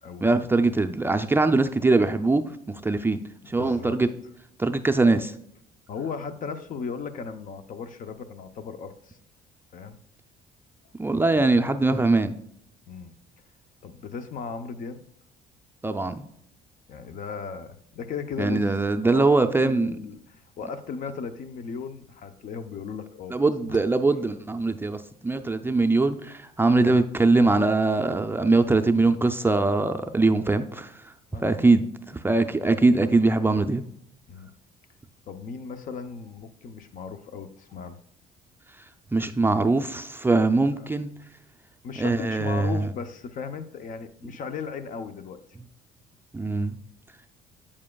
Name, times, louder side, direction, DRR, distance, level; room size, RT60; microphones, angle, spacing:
voice 1, 0.2-3.2 3.5-4.1 4.6-5.3 11.0-12.3 15.8-16.3 18.4-20.0 23.3-31.1 31.4-31.9 32.1-33.8 39.1-41.1 42.0-42.9 46.3-46.8, right 3 dB, 15° right, 6 dB, 0.4 m, -22 dB
voice 2, 3.6-4.0 5.9-9.2 9.7-10.0 11.2-11.7 12.9-13.1 13.8-15.0 16.9-18.8 19.0-19.2 19.6-23.4 23.7-23.8 31.3-31.5 34.3-34.5 35.3-38.0 40.8-40.9 41.8-45.4, left 5 dB, 50° left, 10 dB, 0.7 m, -36 dB
8.5 x 7.3 x 2.3 m, 0.73 s
cardioid pair, 110°, 17 cm